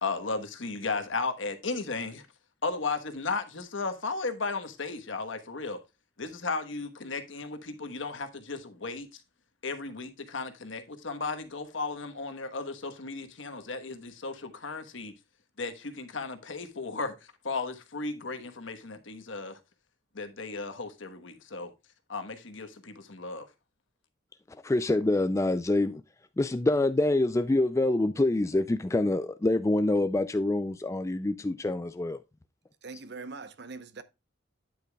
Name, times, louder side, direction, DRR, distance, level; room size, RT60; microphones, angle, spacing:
voice 1, 0.0-2.2 2.6-5.8 6.2-9.2 9.6-15.1 15.6-19.6 20.1-21.7 22.1-23.5, left 3 dB, 80° left, 1.2 m, -35 dB
voice 2, 24.5-26.0 26.4-32.2, left 2 dB, 15° left, 0.3 m, -26 dB
voice 3, 32.8-34.0, right 4 dB, 60° right, 0.8 m, -42 dB
9.2 x 8.2 x 2.3 m
head